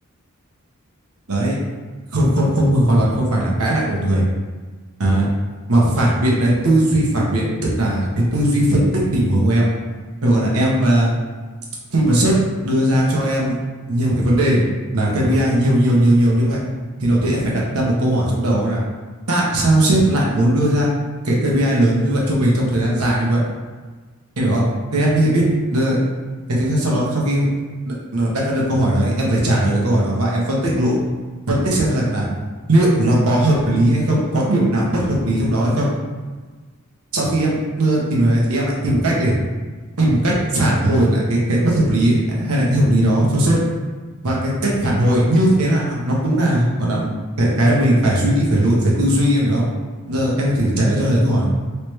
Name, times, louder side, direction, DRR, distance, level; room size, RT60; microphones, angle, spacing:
voice 1, 2.1-4.2 5.0-5.3 5.7-7.4 7.7-9.7 10.2-11.1 11.9-12.3 12.6-13.6 13.9-14.6 14.9-16.6 17.0-18.8 19.3-20.9 21.2-23.4 24.4-25.4 25.7-26.0 26.5-27.5 27.9-31.0 31.5-32.3 32.7-35.9 37.1-39.3 40.0-43.6 44.2-47.1 47.4-49.6 50.1-51.5, right 1 dB, 75° right, -4 dB, 0.9 m, -18 dB
3.3 x 3.1 x 3.1 m, 1.4 s
head